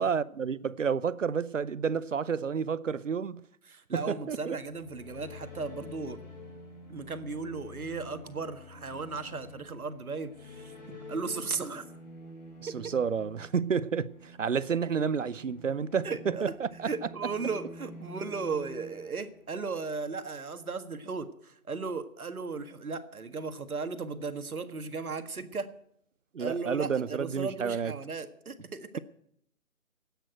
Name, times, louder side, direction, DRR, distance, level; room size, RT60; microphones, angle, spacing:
voice 1, 0.0-3.4 3.9-4.6 12.6-16.9 26.3-27.9, right 6 dB, 60° right, 0.7 m, -30 dB
voice 2, 3.7-6.2 6.9-11.9 12.8-12.9 16.0-16.4 16.8-25.7 26.4-29.0, right 4 dB, 75° right, 1.8 m, -36 dB
sound 1, 4.6-19.8, left 1 dB, 30° left, 3.5 m, -48 dB
13.5 x 9.1 x 9.1 m
hypercardioid pair, 175°, 43 cm